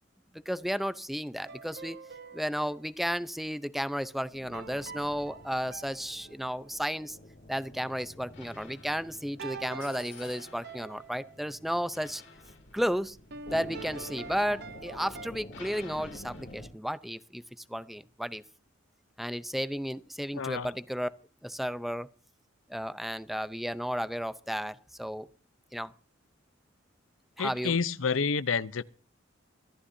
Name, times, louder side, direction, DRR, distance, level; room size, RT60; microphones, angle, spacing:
voice 1, 0.3-2.0 2.3-7.2 7.5-12.2 12.7-13.2 13.5-17.4 17.7-18.4 19.2-21.1 21.4-22.1 22.7-25.3 25.7-25.9 27.4-27.8, equal, ahead, 0.6 m, -33 dB
sound 1, 1.4-2.9 4.5-6.7 9.4-11.4 13.3-15.3, right 4 dB, 55° right, 0.9 m, -45 dB
sound 2, 4.3-16.7, left 2 dB, 65° left, 2.8 m, -49 dB
voice 2, 20.3-20.7 27.4-28.8, left 5 dB, 85° left, 0.7 m, -29 dB
24.5 x 14.5 x 2.7 m
head